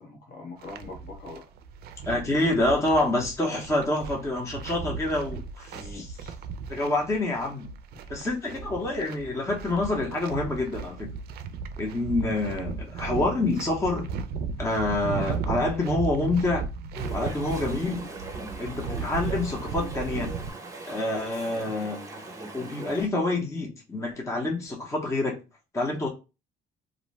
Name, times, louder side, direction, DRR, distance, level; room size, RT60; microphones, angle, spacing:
voice 1, 0.0-1.4 2.1-2.2 2.6-2.8 5.7-6.1 7.9-8.1, left 2 dB, 60° left, 1.2 m, -42 dB
sound 1, 0.6-20.5, right 5 dB, 65° right, 0.4 m, -36 dB
voice 2, 2.1-6.1 6.7-7.7 8.1-11.1 11.8-14.1 14.6-16.7 17.1-18.0 18.6-20.3 20.9-22.0 22.5-25.4 25.7-26.1, left 2 dB, 15° left, 0.7 m, -27 dB
Chatter / Stream, 16.9-23.1, right 3 dB, 20° right, 0.8 m, -39 dB
2.5 x 2.1 x 3.0 m
cardioid pair, 110°, 17 cm